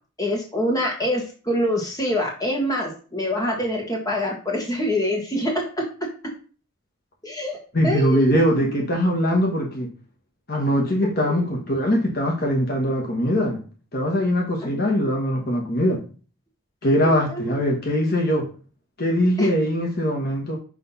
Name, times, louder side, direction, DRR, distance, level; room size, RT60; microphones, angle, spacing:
voice 1, 0.2-5.8 7.2-7.6 7.8-8.8 11.3-11.4 14.6-14.9 17.0-17.6 19.4-19.5, left 1 dB, 15° left, 0 dB, 1.6 m, -25 dB
voice 2, 7.7-9.9 10.5-13.6 13.9-16.0 16.8-18.5 19.0-20.6, equal, 45° left, 0 dB, 1.1 m, -22 dB
5.9 x 3.3 x 5.5 m, 0.38 s
head